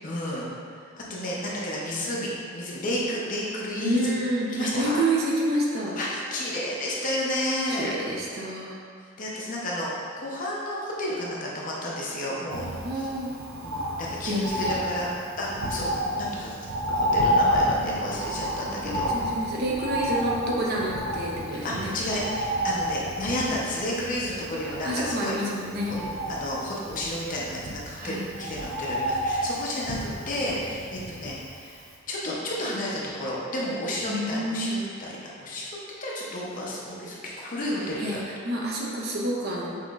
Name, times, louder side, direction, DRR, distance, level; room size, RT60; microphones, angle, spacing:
voice 1, 0.0-0.5 1.1-4.1 4.5-5.0 6.0-7.9 9.2-12.7 13.6-16.6 16.9-19.1 21.5-25.4 25.9-35.7 36.0-38.2, left 1 dB, 40° left, -5 dB, 0.7 m, -31 dB
voice 2, 3.8-6.0 7.7-8.8 12.8-13.3 14.3-14.7 15.8-15.9 18.8-21.9 24.6-25.9 28.0-28.3 34.1-34.7 38.0-39.8, right 1 dB, 50° right, -3 dB, 0.6 m, -28 dB
Bird, 12.5-31.6 31.9-32.0, equal, 90° right, 0.5 m, -30 dB
5.6 x 3.0 x 2.4 m, 2.1 s
head